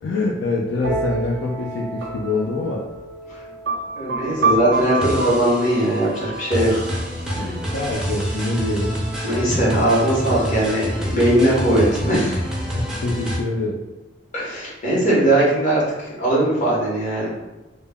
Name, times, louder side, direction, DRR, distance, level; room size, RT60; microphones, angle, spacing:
voice 1, 0.0-2.9 7.4-9.0 12.6-13.8, left 2 dB, 80° left, -1 dB, 0.3 m, -25 dB
sound 1, 0.8-8.4, right 3 dB, 65° right, 0.4 m, -28 dB
voice 2, 4.0-6.9 9.2-12.5 14.3-15.8 16.2-17.3, right 1 dB, 45° left, -6 dB, 0.9 m, -19 dB
sound 2, 4.7-13.4, equal, 5° right, 0.4 m, -27 dB
2.1 x 2.0 x 3.4 m, 1.0 s
head